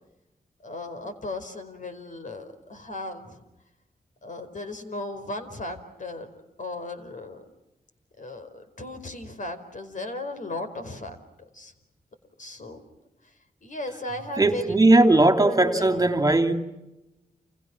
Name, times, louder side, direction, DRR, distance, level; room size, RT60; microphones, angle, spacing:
voice 1, 0.6-3.4 4.2-6.3 6.6-7.4 8.2-11.2 11.5-11.7 12.4-12.8 13.6-15.2 15.4-16.0, left 2 dB, 55° left, 7 dB, 4.8 m, -36 dB
voice 2, 14.4-16.5, right 2 dB, 25° right, 6 dB, 2.9 m, -18 dB
29.5 x 29.5 x 6.3 m, 0.96 s
cardioid pair, 65°, 15 cm